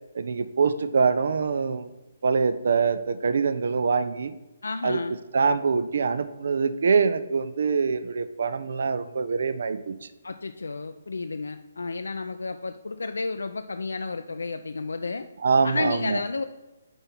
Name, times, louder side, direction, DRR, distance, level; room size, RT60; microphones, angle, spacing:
voice 1, 0.1-1.9 2.2-4.3 4.8-5.0 5.3-10.1 15.4-16.2, right 5 dB, 60° right, 12 dB, 0.4 m, -24 dB
voice 2, 4.6-5.2 10.2-15.3 15.6-16.4, left 3 dB, 70° left, 7 dB, 0.3 m, -31 dB
5.4 x 4.4 x 5.8 m, 1.1 s
figure-of-eight pair, 135°, 0 cm